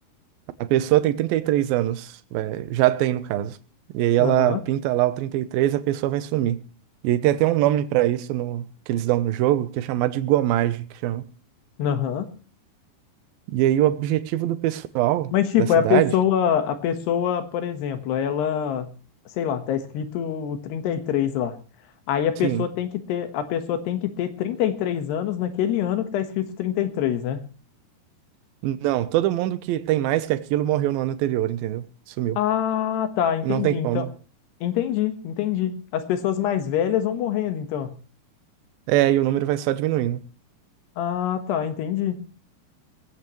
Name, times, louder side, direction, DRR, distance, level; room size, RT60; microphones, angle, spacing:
voice 1, 0.6-3.6 3.9-6.6 7.0-11.2 13.5-15.3 15.6-16.1 22.4-22.6 28.6-31.8 32.2-32.4 33.4-34.1 38.9-40.2, right 13 dB, 75° right, 2.5 m, -23 dB
voice 2, 4.2-4.6 11.8-12.3 15.3-18.9 19.4-21.6 22.1-27.4 32.4-34.1 34.6-37.9 41.0-42.2, left 9 dB, 80° left, 3.5 m, -25 dB
20.0 x 16.0 x 3.2 m
omnidirectional pair, 4.7 m